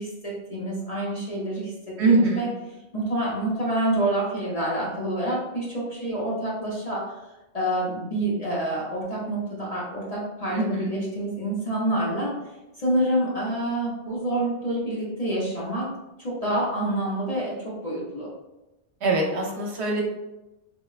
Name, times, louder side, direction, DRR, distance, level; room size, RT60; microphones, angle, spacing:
voice 1, 0.0-2.5 2.9-7.2 7.5-12.4 12.8-15.9 16.2-18.3, right 1 dB, 40° left, -6 dB, 0.7 m, -27 dB
voice 2, 2.0-2.5 10.5-11.0 19.0-20.0, right 2 dB, 75° right, 0 dB, 0.9 m, -23 dB
3.6 x 2.1 x 2.3 m, 0.99 s
omnidirectional pair, 1.2 m